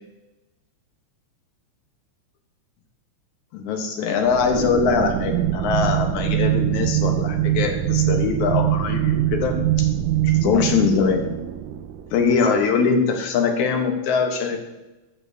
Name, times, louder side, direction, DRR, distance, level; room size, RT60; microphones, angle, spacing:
voice 1, 3.5-9.9 10.2-11.3 12.1-14.6, left 5 dB, 80° left, 4 dB, 2.6 m, -22 dB
sound 1, 4.2-12.5, right 12 dB, 80° right, 1.6 m, -23 dB
14.0 x 6.9 x 2.7 m, 1.1 s
omnidirectional pair, 3.4 m